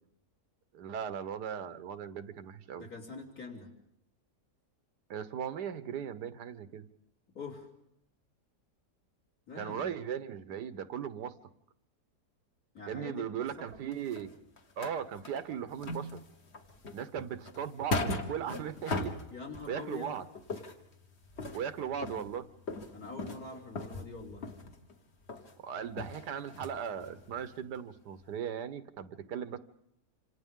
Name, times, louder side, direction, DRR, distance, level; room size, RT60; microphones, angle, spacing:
voice 1, 0.7-2.9 5.1-6.8 9.5-11.3 12.9-14.3 14.8-16.2 16.9-19.2 19.7-20.3 21.5-22.5 25.6-29.6, right 8 dB, 85° right, 12 dB, 1.6 m, -38 dB
voice 2, 2.8-3.7 7.3-7.7 9.5-9.9 12.7-13.3 13.6-13.7 19.3-20.2 22.9-24.4, left 4 dB, 60° left, -1 dB, 3.8 m, -44 dB
sound 1, 13.4-15.5 15.8-20.0 20.3-24.9 25.3-25.5 25.9-27.4 27.8-27.9 28.2-28.3, left 2 dB, 45° left, 1.7 m, -39 dB
27.0 x 26.5 x 3.7 m, 0.77 s
omnidirectional pair, 1.7 m